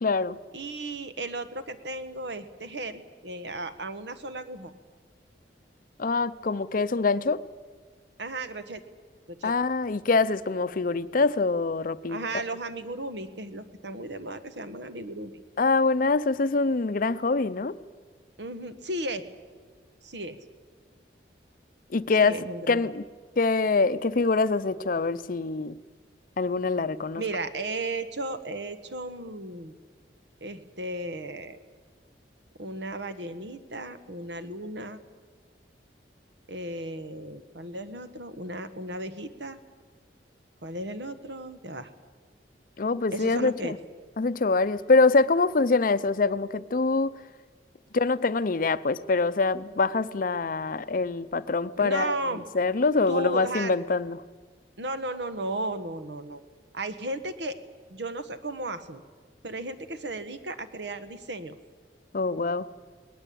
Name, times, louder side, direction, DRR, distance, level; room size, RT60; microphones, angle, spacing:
voice 1, 0.0-0.4 6.0-7.4 9.4-12.2 15.6-17.8 21.9-23.0 23.4-25.8 26.4-27.2 42.8-43.8 44.2-47.1 47.9-52.1 52.5-54.2 62.1-62.7, left 3 dB, 50° left, 0.6 m, -24 dB
voice 2, 0.5-4.7 8.2-8.8 9.3-9.5 12.1-15.4 18.4-19.3 20.0-20.4 22.2-22.8 27.2-29.7 30.4-31.6 32.6-35.0 36.5-39.6 40.6-41.9 43.1-43.7 51.8-52.4 53.1-53.7 54.8-56.4 56.7-57.6 57.9-59.0 59.4-61.6, right 2 dB, 75° right, 1.3 m, -35 dB
20.0 x 19.0 x 8.5 m
head